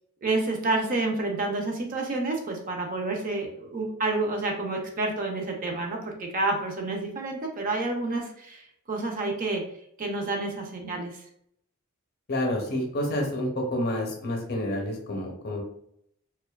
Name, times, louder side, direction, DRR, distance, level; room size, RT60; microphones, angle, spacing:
voice 1, 0.2-9.6 10.0-11.2, right 2 dB, 40° right, 1 dB, 0.4 m, -29 dB
voice 2, 12.3-15.6, left 1 dB, 45° left, 1 dB, 0.6 m, -29 dB
2.5 x 2.2 x 2.2 m, 0.70 s
head